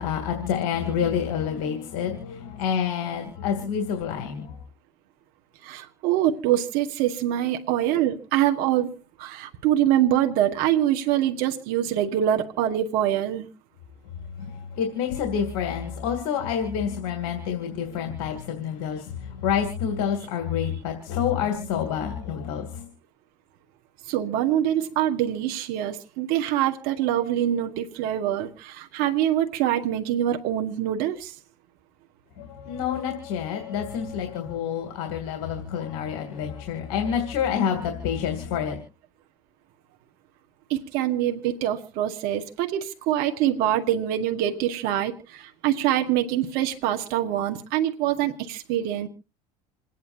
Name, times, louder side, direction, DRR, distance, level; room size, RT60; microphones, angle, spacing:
voice 1, 0.0-4.6 14.4-22.8 32.4-38.8, left 8 dB, 70° left, 4 dB, 2.6 m, -28 dB
voice 2, 5.6-13.5 24.1-31.3 40.7-49.1, right 11 dB, 65° right, 5 dB, 1.5 m, -24 dB
27.5 x 9.4 x 2.7 m, 0.31 s
hypercardioid pair, 85°, 17 cm